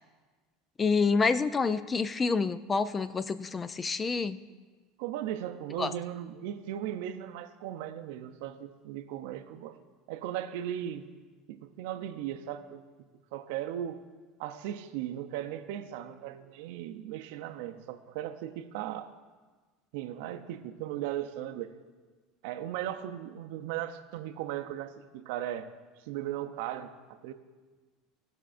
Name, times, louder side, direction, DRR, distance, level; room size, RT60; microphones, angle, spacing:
voice 1, 0.8-4.4 5.8-5.9, left 4 dB, 20° left, 14 dB, 0.3 m, -28 dB
voice 2, 5.0-9.8 10.1-11.1 11.5-12.8 13.3-14.0 14.4-19.1 19.9-21.7 22.4-25.7 26.0-27.3, right 11 dB, 75° right, 8 dB, 0.6 m, -37 dB
17.0 x 5.9 x 2.5 m, 1.4 s
supercardioid pair, 115°, 0 cm